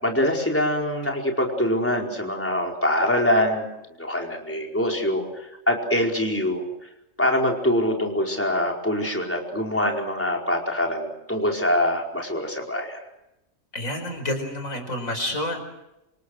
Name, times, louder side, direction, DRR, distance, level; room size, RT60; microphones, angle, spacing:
voice 1, 0.0-3.7 4.0-6.6 7.2-13.0, left 1 dB, 10° left, 0 dB, 4.8 m, -24 dB
voice 2, 13.7-15.6, left 1 dB, 75° left, 6 dB, 5.5 m, -29 dB
27.5 x 27.0 x 6.5 m, 0.91 s
omnidirectional pair, 1.4 m